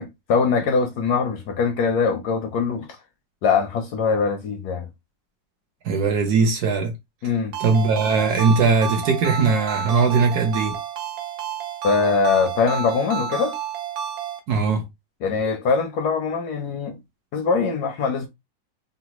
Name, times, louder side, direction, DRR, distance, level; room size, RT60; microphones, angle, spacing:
voice 1, 0.0-2.9 3.4-4.9 7.2-7.5 11.8-13.6 15.2-17.0 17.3-18.3, left 5 dB, 75° left, 0.9 m, -22 dB
voice 2, 5.8-6.9 7.6-10.8 14.5-14.9, right 4 dB, 65° right, 1.1 m, -20 dB
Ringtone, 7.5-14.4, right 8 dB, 90° right, 1.5 m, -30 dB
3.9 x 2.1 x 2.8 m
omnidirectional pair, 2.1 m